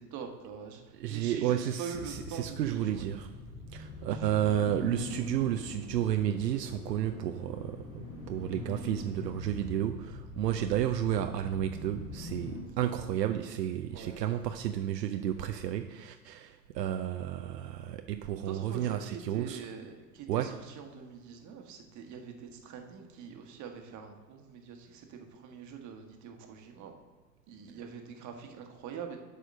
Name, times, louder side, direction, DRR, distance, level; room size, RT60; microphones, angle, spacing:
voice 1, 0.0-3.1 4.1-4.6 4.8-5.1 13.9-14.2 18.3-26.9 27.5-29.2, right 6 dB, 35° right, 4 dB, 1.3 m, -44 dB
voice 2, 1.0-3.3 3.7-19.6 20.3-20.6, right 11 dB, 75° right, 7 dB, 0.6 m, -32 dB
sound 1, 1.9-12.6, left 2 dB, 75° left, 2.7 m, -43 dB
6.6 x 5.0 x 6.2 m, 1.4 s
figure-of-eight pair, 85°, 50 cm